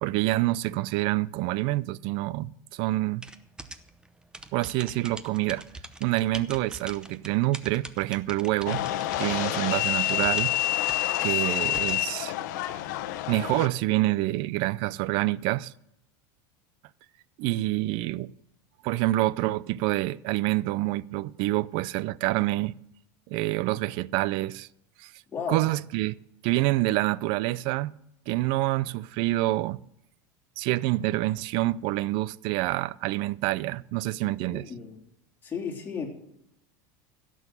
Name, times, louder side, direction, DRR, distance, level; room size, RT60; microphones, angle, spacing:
voice 1, 0.0-3.3 4.5-5.6 6.0-8.8 9.2-10.6 11.2-12.3 13.3-15.7 17.4-18.3 18.8-22.7 23.3-24.7 25.0-25.1 25.5-26.1 26.4-28.0 28.3-29.8 30.6-34.7, right 17 dB, 60° right, 0.5 m, -27 dB
sound 1, 3.2-12.1, right 2 dB, 10° right, 0.8 m, -44 dB
sound 2, 8.7-13.7, left 13 dB, 75° left, 0.9 m, -28 dB
voice 2, 25.3-25.6 34.2-35.0 35.4-36.1, left 6 dB, 20° left, 3.3 m, -34 dB
16.0 x 6.2 x 8.1 m
supercardioid pair, 125°, 10 cm